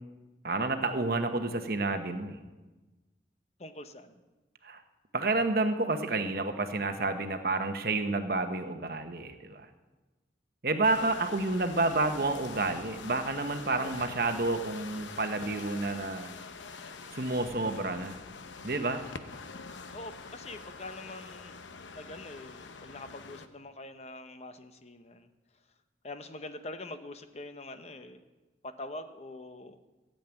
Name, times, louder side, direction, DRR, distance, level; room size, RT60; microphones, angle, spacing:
voice 1, 0.4-2.4 4.6-4.8 5.1-9.7 10.6-16.3 17.1-18.2 18.6-19.0, right 3 dB, 55° right, 7 dB, 1.0 m, -30 dB
voice 2, 3.6-4.2 11.0-11.1 19.9-21.6 21.9-25.3 26.0-28.2 28.6-29.8, left 2 dB, 35° left, 9 dB, 0.7 m, -44 dB
sound 1, 10.8-23.5, left 4 dB, 85° left, 0.8 m, -45 dB
14.0 x 7.7 x 8.9 m, 1.2 s
head